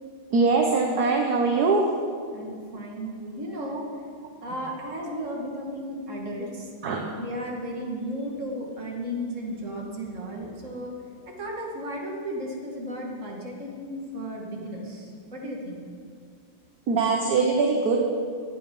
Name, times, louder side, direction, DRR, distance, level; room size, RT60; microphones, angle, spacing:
voice 1, 0.3-1.8 6.8-7.0 16.9-18.0, right 4 dB, 55° right, 1 dB, 1.5 m, -22 dB
voice 2, 2.3-3.8 4.4-10.9 11.3-15.8, equal, 35° right, -1 dB, 2.4 m, -34 dB
16.0 x 9.5 x 5.6 m, 2.1 s
omnidirectional pair, 2.3 m